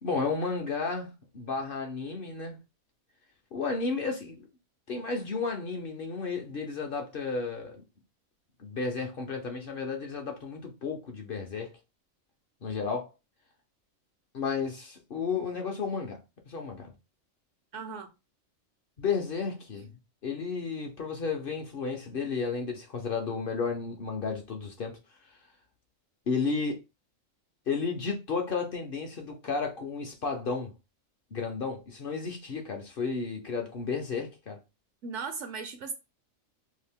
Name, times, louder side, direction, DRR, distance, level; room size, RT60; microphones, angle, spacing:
voice 1, 0.0-2.6 3.5-4.4 4.9-7.8 8.6-11.7 12.6-13.1 14.3-16.2 16.5-16.9 19.0-19.9 20.2-25.0 26.3-26.8 27.7-30.7 31.3-34.6, left 4 dB, 50° left, 0.7 m, -32 dB
voice 2, 17.7-18.1 35.0-35.9, right 5 dB, 70° right, 0.9 m, -37 dB
2.8 x 2.4 x 3.4 m
omnidirectional pair, 1.4 m